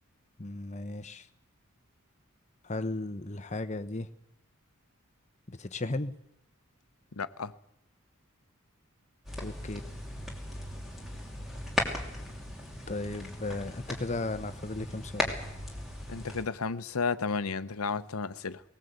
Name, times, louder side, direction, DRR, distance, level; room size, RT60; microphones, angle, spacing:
voice 1, 0.4-1.3 2.6-4.1 5.5-6.1 9.4-9.8 12.9-15.4, left 2 dB, 30° left, 0.9 m, -35 dB
voice 2, 7.1-7.5 16.1-18.6, left 4 dB, 85° left, 0.8 m, -32 dB
sound 1, 9.3-16.4, left 1 dB, ahead, 2.9 m, -37 dB
19.5 x 18.5 x 8.1 m
head